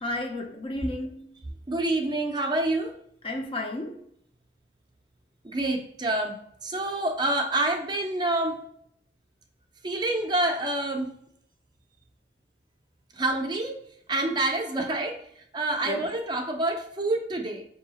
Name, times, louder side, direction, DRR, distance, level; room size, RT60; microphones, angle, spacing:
voice 1, 0.0-1.3 3.2-4.0 15.8-16.1, left 1 dB, 30° left, 0.4 m, -33 dB
voice 2, 1.7-2.9 5.4-8.6 9.8-11.1 13.1-13.8 14.1-17.6, right 2 dB, 25° right, 0.4 m, -27 dB
4.6 x 2.7 x 2.8 m
head